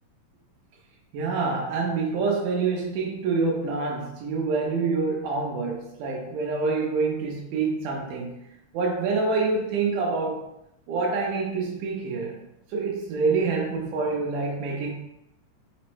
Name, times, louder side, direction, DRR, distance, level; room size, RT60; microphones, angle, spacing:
voice 1, 1.1-8.3 8.7-10.4 10.9-12.3 12.7-14.9, right 4 dB, 85° right, -1 dB, 2.2 m, -26 dB
5.4 x 2.0 x 4.3 m, 0.86 s
omnidirectional pair, 3.6 m